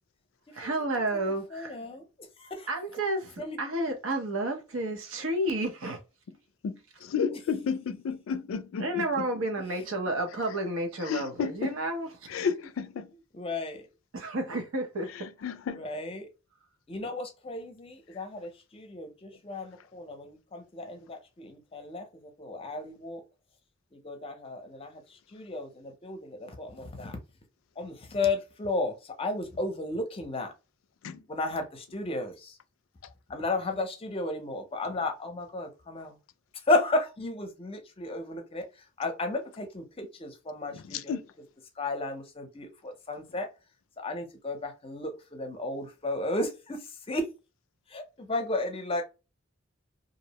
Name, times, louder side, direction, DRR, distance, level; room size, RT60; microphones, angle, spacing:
voice 1, 0.5-1.7 2.7-6.0 8.8-12.4 14.1-15.3, right 1 dB, 90° right, 0.7 m, -31 dB
voice 2, 1.5-2.7 3.4-3.6 13.3-13.9 15.7-16.3 16.9-22.0 22.4-23.2 23.9-27.2 27.8-30.5 31.3-32.6 33.3-36.2 36.7-38.7 39.0-41.2 41.8-43.5 44.0-47.3 47.9-49.0, left 2 dB, 30° left, 0.6 m, -33 dB
voice 3, 6.6-9.3 11.0-11.7 12.3-13.1 15.1-15.9 31.0-31.2 33.0-33.1 40.7-41.3, left 6 dB, 85° left, 0.3 m, -32 dB
2.5 x 2.0 x 2.7 m
head